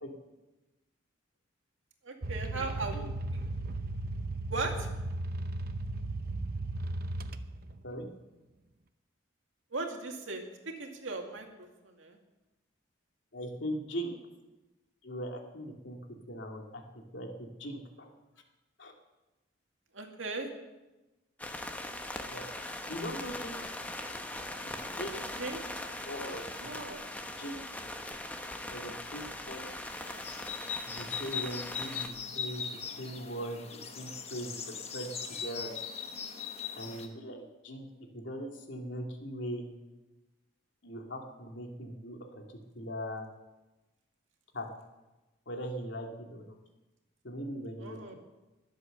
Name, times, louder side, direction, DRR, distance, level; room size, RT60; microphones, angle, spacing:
voice 1, 2.0-3.0 4.5-4.9 9.7-12.2 19.9-20.5 25.4-25.6 26.6-27.0 47.8-48.1, right 3 dB, 85° right, 2 dB, 2.3 m, -38 dB
sound 1, 2.2-7.8, right 2 dB, 50° right, 0.7 m, -36 dB
voice 2, 2.5-3.1 7.8-8.1 13.3-14.2 15.0-16.0 16.3-16.8 17.1-18.1 18.8-18.9 22.3-22.4 22.9-23.6 24.7-25.2 26.1-26.4 27.4-27.6 28.7-29.7 30.8-32.6 33.0-34.6 34.9-35.1 35.4-35.7 36.8-37.9 38.1-39.7 40.8-43.3 44.5-44.7 45.5-46.6 47.2-48.1, equal, 75° left, 2 dB, 2.4 m, -40 dB
sound 2, 21.4-32.1, left 1 dB, 10° left, 1.0 m, -40 dB
sound 3, 29.9-37.1, left 6 dB, 30° left, 1.2 m, -40 dB
21.0 x 8.0 x 6.6 m, 1.1 s
head